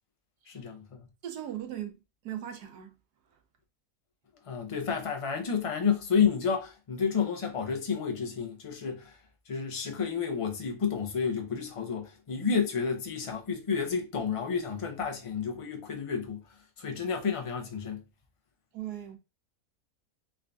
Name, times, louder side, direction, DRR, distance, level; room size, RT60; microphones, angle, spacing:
voice 1, 0.5-1.0 4.5-9.2 9.5-16.4 16.8-18.0, left 6 dB, 50° left, 0.3 m, -30 dB
voice 2, 1.2-2.9 18.7-19.2, right 11 dB, 90° right, 1.3 m, -38 dB
3.6 x 2.6 x 3.4 m
omnidirectional pair, 1.6 m